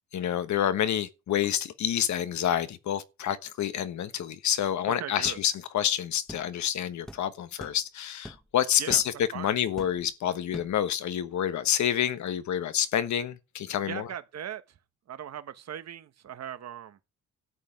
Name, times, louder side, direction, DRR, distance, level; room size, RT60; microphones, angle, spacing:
voice 1, 0.1-14.1, left 10 dB, 70° left, 1.3 m, -28 dB
voice 2, 5.0-5.4 8.8-9.0 9.3-9.5 13.8-14.6 15.1-17.0, right 9 dB, 60° right, 1.6 m, -39 dB
sound 1, 5.3-5.4 6.3-6.5 7.1-7.2 7.6-7.8 8.2-8.5 8.9-9.1 9.8-10.1 10.5-10.8, equal, ahead, 1.2 m, -43 dB
13.0 x 5.6 x 8.7 m
cardioid pair, 90°, 30 cm